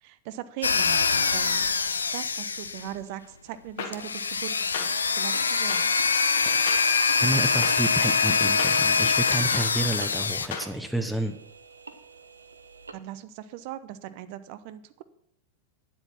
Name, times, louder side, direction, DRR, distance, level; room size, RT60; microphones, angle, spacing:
voice 1, 0.0-1.7 2.1-4.5 4.8-5.9 12.9-15.0, right 12 dB, 45° right, 13 dB, 0.7 m, -39 dB
sound 1, 0.6-3.0 3.9-10.5, left 5 dB, 75° left, 0.6 m, -24 dB
sound 2, 3.8-3.9 4.7-4.9 5.7-5.8 6.7-6.8 7.6-7.7 8.6-8.7 9.5-9.7 10.5-10.7, left 7 dB, 55° left, 1.8 m, -33 dB
sound 3, 4.9-12.9, right 4 dB, 75° right, 0.8 m, -43 dB
voice 2, 6.3-6.7 7.2-11.4, right 1 dB, ahead, 7 dB, 0.8 m, -30 dB
9.9 x 7.9 x 5.9 m, 0.70 s
figure-of-eight pair, 90°, 0 cm